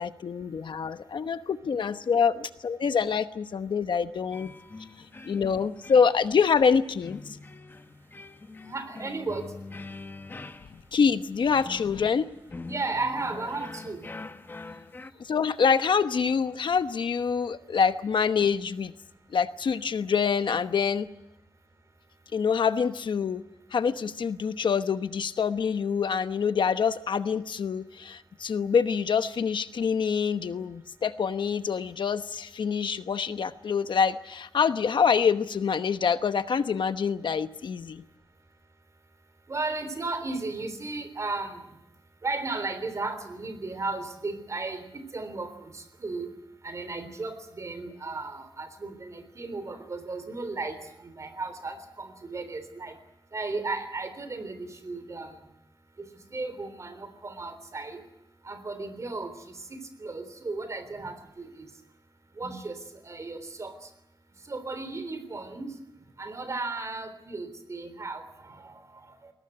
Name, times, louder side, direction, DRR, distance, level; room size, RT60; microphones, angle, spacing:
voice 1, 0.0-4.5 5.2-7.4 10.9-12.3 15.2-18.9 19.3-21.1 22.3-23.4 23.7-38.0, left 6 dB, 75° left, 10 dB, 1.0 m, -26 dB
sound 1, 4.3-15.1, left 3 dB, 25° left, 0.9 m, -44 dB
voice 2, 8.6-9.5 12.6-14.1 39.5-41.6 42.2-46.3 46.6-52.9 53.3-55.4 56.0-58.0 58.5-61.7 62.4-62.8 63.0-63.7 64.5-65.7 66.2-69.3, right 3 dB, 40° right, 10 dB, 3.5 m, -35 dB
21.5 x 18.0 x 9.7 m, 0.86 s
wide cardioid pair, 170°, 8 cm